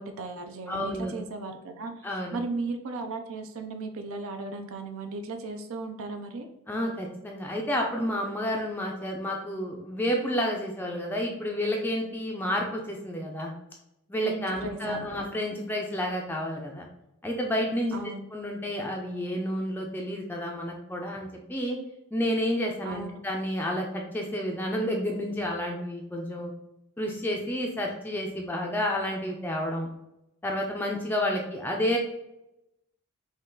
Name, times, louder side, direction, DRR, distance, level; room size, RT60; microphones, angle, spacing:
voice 1, 0.0-6.5 14.2-15.1 17.9-18.2 22.8-23.2, right 3 dB, 65° right, 6 dB, 0.5 m, -36 dB
voice 2, 0.7-1.1 2.0-2.4 6.7-13.5 14.1-16.9 17.2-18.0 18.3-21.8 22.1-26.5 27.0-29.9 30.4-32.0, equal, 10° left, 0 dB, 0.4 m, -30 dB
5.3 x 2.3 x 3.7 m, 0.88 s
head